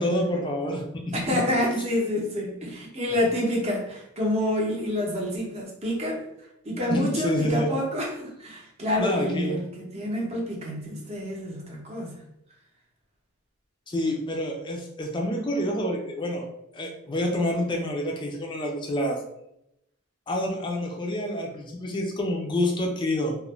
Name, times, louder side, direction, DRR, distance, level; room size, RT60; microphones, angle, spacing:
voice 1, 0.0-1.1 6.9-7.7 9.0-9.6 13.9-16.5 16.7-19.2 20.3-23.4, left 1 dB, 20° left, 1 dB, 0.4 m, -27 dB
voice 2, 1.1-6.2 6.6-12.2, left 1 dB, 30° right, -2 dB, 0.7 m, -28 dB
2.4 x 2.1 x 3.0 m, 0.81 s
head